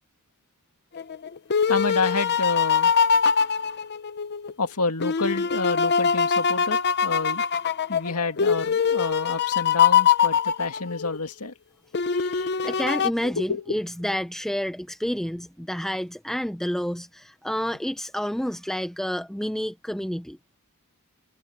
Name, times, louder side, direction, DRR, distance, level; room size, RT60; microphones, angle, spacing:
sound 1, 1.0-4.5 5.0-11.2 11.9-13.1, left 7 dB, 50° left, 0.7 m, -23 dB
voice 1, 1.7-2.9 4.6-7.4 7.9-11.5 12.1-12.5 13.2-13.8, left 3 dB, 90° left, 2.1 m, -29 dB
voice 2, 12.3-20.4, equal, ahead, 0.6 m, -29 dB
head